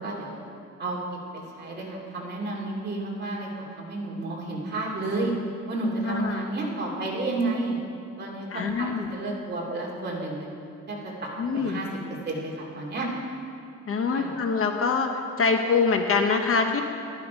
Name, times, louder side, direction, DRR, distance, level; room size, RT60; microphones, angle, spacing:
voice 1, 0.0-0.4 0.8-1.0 1.3-5.3 5.7-7.8 8.2-10.5 10.9-11.9 12.2-13.1 14.1-14.4, right 2 dB, 35° right, -3 dB, 2.6 m, -31 dB
voice 2, 6.0-6.4 8.5-9.1 11.4-11.8 13.9-15.1 15.4-16.8, left 5 dB, 45° left, 4 dB, 0.9 m, -24 dB
12.5 x 11.5 x 5.2 m, 2.5 s
cardioid pair, 140°, 31 cm